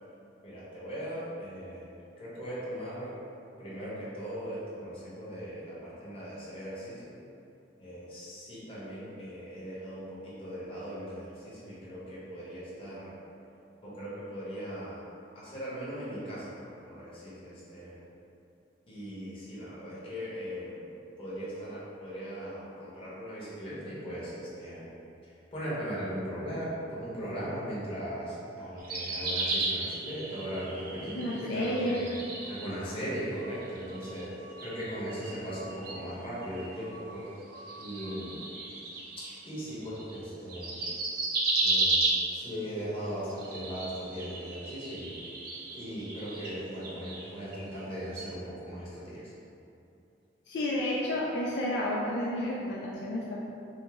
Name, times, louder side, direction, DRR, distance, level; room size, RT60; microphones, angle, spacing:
voice 1, 0.4-3.2 3.6-7.1 7.8-13.2 13.8-15.0 15.3-18.0 18.9-20.9 21.2-24.8 25.2-32.2 32.5-34.3 34.6-37.3 37.8-38.4 39.4-40.9 41.6-45.2 45.7-49.3, equal, 30° left, -9 dB, 1.1 m, -39 dB
sound 1, 28.8-33.0 33.3-40.2 40.5-42.6 43.2-47.9 48.1-48.3, right 2 dB, 50° right, 0.6 m, -34 dB
voice 2, 31.2-32.0 50.5-53.4, left 1 dB, 65° left, -4 dB, 0.4 m, -31 dB
5.4 x 2.1 x 3.5 m, 2.7 s
head